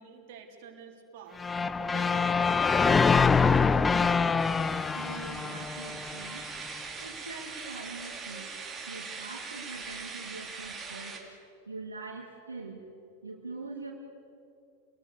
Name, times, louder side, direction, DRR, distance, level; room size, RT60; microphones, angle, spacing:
voice 1, 0.0-1.4 1.8-3.7, right 6 dB, 50° right, 2 dB, 3.7 m, -49 dB
sound 1, 1.4-6.4, left 5 dB, 15° left, 0.6 m, -25 dB
sound 2, 4.4-11.2, right 4 dB, 15° right, 3.2 m, -41 dB
voice 2, 4.9-6.5 7.0-8.6 8.9-11.2 11.7-12.8 13.2-13.9, right 3 dB, 75° right, 0 dB, 2.2 m, -43 dB
28.5 x 20.5 x 6.8 m, 2.7 s
figure-of-eight pair, 90°, 0 cm